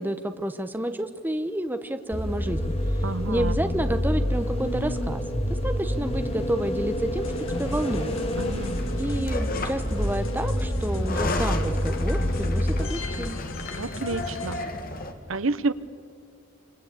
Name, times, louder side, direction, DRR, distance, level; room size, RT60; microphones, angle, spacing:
voice 1, 0.0-2.8 3.3-8.1 9.0-13.4, right 1 dB, 10° right, 8 dB, 1.0 m, -30 dB
sound 1, 2.1-13.4, equal, 30° left, 2.0 m, -27 dB
voice 2, 3.0-3.6 8.4-8.7 13.8-14.6 15.3-15.7, right 3 dB, 80° right, 14 dB, 0.9 m, -29 dB
sound 2, 7.2-14.6, left 2 dB, 75° left, 1.5 m, -38 dB
sound 3, 8.6-10.0 10.9-15.1, left 2 dB, 45° left, 2.0 m, -34 dB
26.5 x 26.0 x 8.4 m, 2.3 s
head